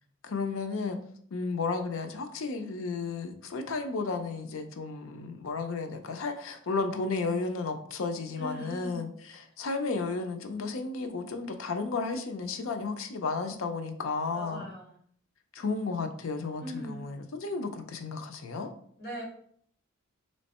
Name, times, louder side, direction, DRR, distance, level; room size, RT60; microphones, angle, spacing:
voice 1, 0.2-1.0 1.3-14.7 15.5-18.7, left 4 dB, 80° left, 7 dB, 0.5 m, -33 dB
voice 2, 8.4-9.1 14.3-15.0 16.6-17.2 19.0-19.2, equal, 50° left, -4 dB, 1.9 m, -40 dB
3.5 x 3.2 x 4.1 m, 0.62 s
head